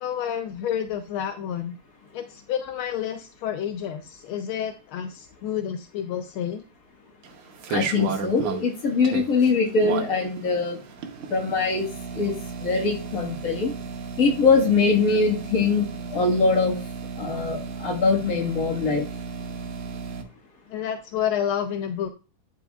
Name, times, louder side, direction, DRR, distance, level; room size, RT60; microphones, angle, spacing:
voice 1, 0.0-1.8 2.1-6.6 20.7-22.1, left 9 dB, 80° left, 7 dB, 1.4 m, -29 dB
sound 1, 7.2-20.2, right 6 dB, 80° right, 1.8 m, -35 dB
voice 2, 7.7-10.8 11.3-11.9 12.1-12.3 12.6-13.7 14.2-16.7 17.2-19.1, left 4 dB, 45° left, 0 dB, 1.9 m, -22 dB
11.0 x 4.9 x 2.3 m, 0.34 s
omnidirectional pair, 2.3 m